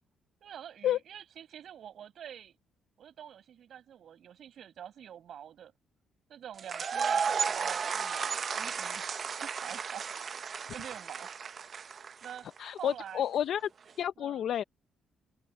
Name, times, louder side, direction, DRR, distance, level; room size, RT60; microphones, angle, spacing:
voice 1, 0.4-2.5 3.0-5.7 6.3-9.1 9.4-11.6 12.0-12.5 12.7-13.3 14.2-14.5, right 9 dB, 65° right, 7.7 m, -47 dB
sound 1, 6.6-12.6, right 6 dB, 45° right, 0.7 m, -34 dB
voice 2, 12.6-13.7 14.0-14.6, left 10 dB, 70° left, 0.6 m, -30 dB
open air
cardioid pair, 90°, 0 cm